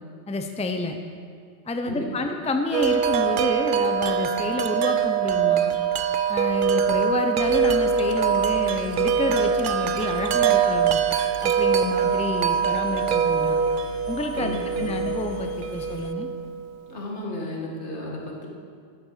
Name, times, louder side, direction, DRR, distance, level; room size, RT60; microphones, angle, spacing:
voice 1, 0.3-1.0 1.7-5.7 6.3-11.0 11.4-13.6 14.1-16.3, left 2 dB, 5° left, 5 dB, 0.6 m, -29 dB
voice 2, 1.9-2.3 14.3-15.1 16.9-18.5, left 1 dB, 80° left, -2 dB, 2.2 m, -34 dB
Wind chime, 2.7-16.7, right 7 dB, 60° right, 0.6 m, -23 dB
Engine, 7.4-16.1, left 6 dB, 65° left, 0.8 m, -42 dB
12.0 x 7.9 x 6.6 m, 2.2 s
omnidirectional pair, 1.1 m